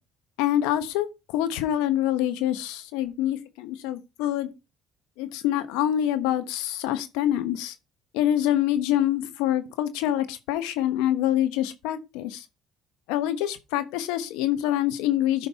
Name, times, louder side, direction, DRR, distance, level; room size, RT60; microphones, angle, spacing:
voice 1, 0.4-1.1 1.3-4.5 5.2-7.7 8.1-12.4 13.1-15.5, left 12 dB, 80° left, 1.0 m, -25 dB
13.5 x 5.2 x 2.8 m
supercardioid pair, 70°, 0 cm